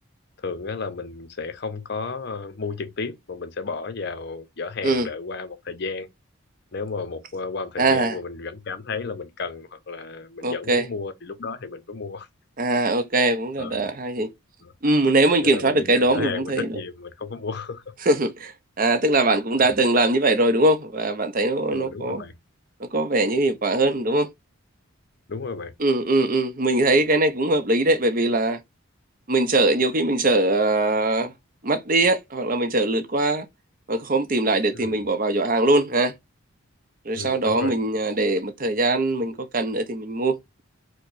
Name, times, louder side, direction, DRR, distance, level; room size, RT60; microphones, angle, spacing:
voice 1, 0.4-6.1 6.7-12.3 13.6-13.9 14.6-14.7 15.4-17.8 19.2-19.4 21.7-22.3 25.3-25.7 34.7-35.0 37.1-37.8, left 4 dB, 50° left, 0.6 m, -33 dB
voice 2, 7.8-8.2 10.4-10.8 12.6-14.3 14.8-16.7 18.0-22.2 22.8-24.3 25.8-28.6 29.3-31.3 31.6-33.5 33.9-36.1 37.0-40.4, right 2 dB, 40° right, 0.6 m, -21 dB
4.6 x 2.1 x 2.5 m
head